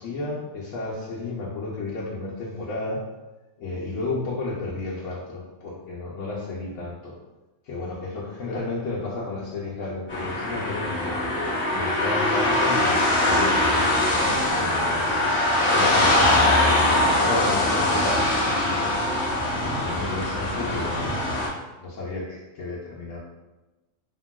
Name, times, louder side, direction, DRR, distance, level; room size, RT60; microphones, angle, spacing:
voice 1, 0.0-3.1 3.6-7.1 7.6-11.2 11.7-15.1 15.6-18.9 19.6-23.2, left 2 dB, 75° left, -5 dB, 0.9 m, -32 dB
sound 1, 10.1-21.5, left 1 dB, 10° left, 0.6 m, -22 dB
2.9 x 2.6 x 2.2 m, 1.1 s
omnidirectional pair, 1.3 m